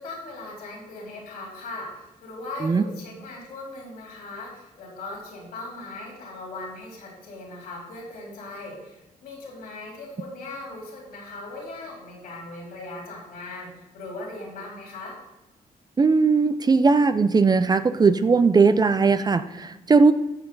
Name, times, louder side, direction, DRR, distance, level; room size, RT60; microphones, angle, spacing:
voice 1, 0.0-15.1, left 2 dB, 85° left, -2 dB, 3.8 m, -39 dB
voice 2, 16.0-20.1, right 4 dB, 25° right, 12 dB, 0.5 m, -19 dB
14.0 x 5.6 x 3.9 m, 0.97 s
cardioid pair, 100°, 15 cm